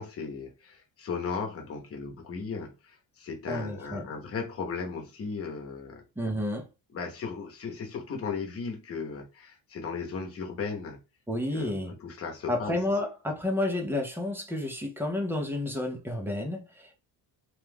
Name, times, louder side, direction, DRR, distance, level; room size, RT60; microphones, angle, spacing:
voice 1, 0.0-6.0 6.9-11.0 11.5-12.8, left 5 dB, 30° left, 0.8 m, -36 dB
voice 2, 3.5-4.1 6.2-6.7 11.3-11.9 12.5-17.0, left 1 dB, 5° right, 0.3 m, -31 dB
3.0 x 2.2 x 3.3 m
cardioid pair, 170°, 44 cm